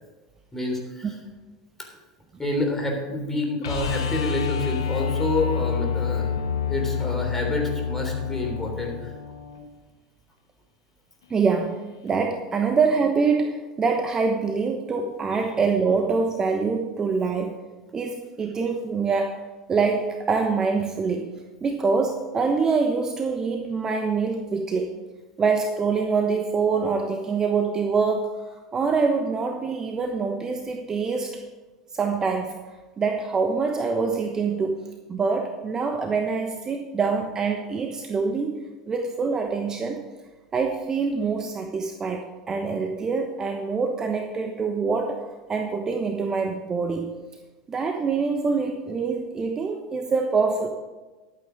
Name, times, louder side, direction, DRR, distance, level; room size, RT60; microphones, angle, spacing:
voice 1, 0.5-1.1 1.8-1.9 2.4-6.3 6.7-9.1, left 1 dB, 15° left, 1 dB, 3.5 m, -28 dB
sound 1, 3.6-9.6 12.1-12.2, left 7 dB, 75° left, 1.3 m, -28 dB
voice 2, 11.3-11.8 12.0-17.5 17.9-19.4 19.7-21.3 21.6-24.9 25.4-31.4 31.9-34.8 35.1-38.6 38.9-40.0 40.5-47.1 47.7-50.7, right 4 dB, 25° right, 4 dB, 1.1 m, -25 dB
12.0 x 8.8 x 5.2 m, 1.2 s
figure-of-eight pair, 80°, 2 cm